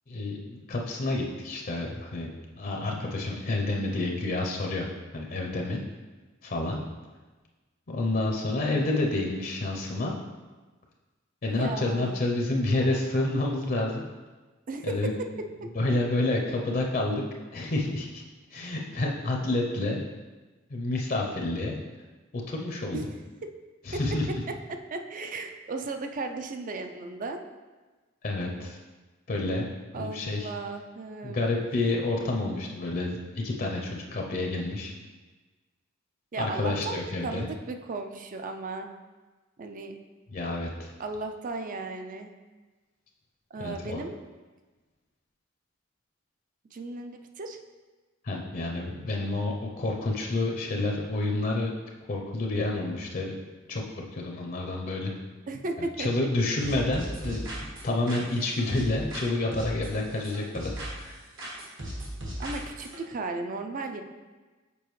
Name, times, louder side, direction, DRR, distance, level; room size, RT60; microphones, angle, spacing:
voice 1, 0.1-2.3 2.6-4.9 5.1-5.8 6.4-6.8 7.9-10.1 11.4-14.0 14.8-15.1 15.7-17.2 17.5-18.2 18.5-20.0 20.7-21.8 22.5-23.0 23.8-24.4 28.2-28.8 29.3-29.7 29.9-30.5 31.2-34.9 36.4-37.5 40.3-40.9 43.6-44.0 48.2-51.7 52.1-53.4 53.7-55.1 55.8-61.2, left 2 dB, 45° left, 0 dB, 0.6 m, -29 dB
voice 2, 11.5-12.2 14.7-15.7 22.9-23.1 24.3-24.4 24.7-27.4 29.9-31.4 36.3-38.9 39.6-39.9 41.0-42.3 43.5-44.2 46.7-47.6 55.5-56.3 62.4-64.0, right 3 dB, 40° right, 6 dB, 0.4 m, -35 dB
sound 1, 56.6-59.3 59.5-61.1 61.4-63.0, right 1 dB, 70° right, 1.5 m, -37 dB
6.9 x 4.9 x 3.1 m, 1.3 s
head